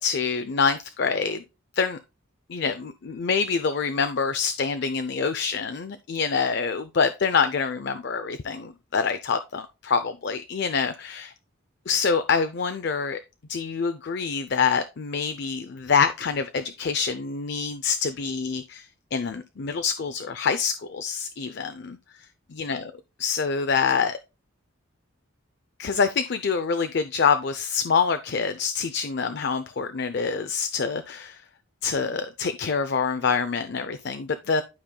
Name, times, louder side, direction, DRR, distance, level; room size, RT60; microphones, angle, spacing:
voice 1, 0.0-1.4 1.8-2.0 2.5-11.3 11.9-13.2 13.5-22.0 22.5-22.8 23.2-24.2 25.8-31.4 31.8-34.6, left 5 dB, 50° left, 0.5 m, -26 dB
11.5 x 5.2 x 2.3 m
head